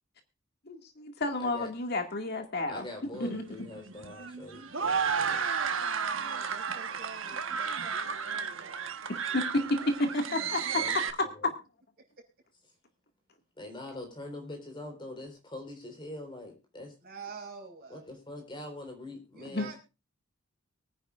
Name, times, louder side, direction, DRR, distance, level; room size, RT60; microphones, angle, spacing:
voice 1, 0.7-2.8 3.2-3.4 9.1-10.6 19.5-19.7, left 1 dB, 50° left, 5 dB, 2.0 m, -31 dB
voice 2, 2.7-5.5 10.8-10.9 11.2-11.5 13.6-16.9 17.9-19.7, left 2 dB, 25° left, 4 dB, 4.2 m, -43 dB
sound 1, 3.1-11.1, right 6 dB, 70° right, 1.2 m, -33 dB
voice 3, 5.8-9.9 12.2-12.3 17.0-18.1 19.3-19.8, right 5 dB, 50° right, 3 dB, 5.0 m, -48 dB
23.5 x 9.9 x 2.5 m, 0.29 s
head